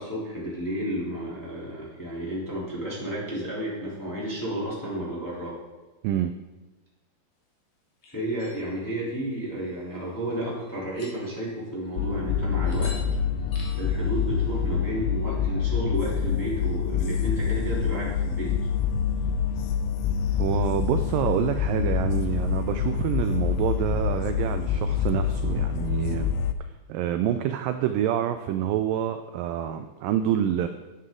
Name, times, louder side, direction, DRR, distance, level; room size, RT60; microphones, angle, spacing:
voice 1, 0.0-5.5 8.1-12.9 13.8-18.5, right 1 dB, 5° left, -7 dB, 2.7 m, -32 dB
sound 1, 8.0-8.6 9.6-10.2 10.6-10.7 10.9-11.6 12.7-13.1 13.5-15.4, left 3 dB, 65° left, 3.4 m, -48 dB
sound 2, 12.0-26.5, left 7 dB, 80° left, 2.1 m, -26 dB
voice 2, 20.4-26.3 26.9-30.7, right 10 dB, 90° right, 9 dB, 1.9 m, -27 dB
11.0 x 10.0 x 3.8 m, 1.1 s
omnidirectional pair, 4.5 m